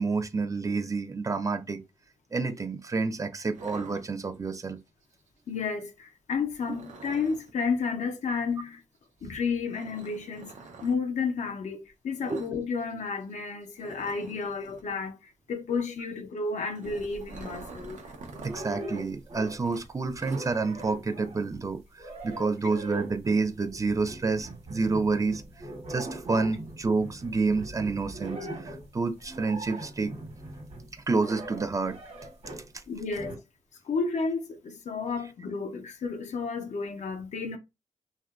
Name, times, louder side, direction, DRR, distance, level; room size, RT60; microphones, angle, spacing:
voice 1, 0.0-1.9 2.3-4.8 12.3-12.4 18.4-25.4 25.9-30.1 30.9-32.0, right 4 dB, 25° right, 0.3 m, -29 dB
sound 1, 3.5-4.6 6.6-7.5 9.7-11.0 12.2-12.6 12.8-13.0 13.3-13.4 13.8-14.9 16.5-18.7 19.0-19.1 19.6-20.9, right 3 dB, 85° right, 0.5 m, -46 dB
voice 2, 5.5-8.8 9.2-10.5 10.8-18.0 32.9-33.4 33.8-37.6, left 5 dB, 75° left, 0.5 m, -32 dB
sound 2, 16.8-17.9 18.3-19.8 20.1-32.7 33.1-33.4, right 1 dB, 60° right, 1.0 m, -41 dB
2.8 x 2.3 x 2.3 m
cardioid pair, 90°, 12 cm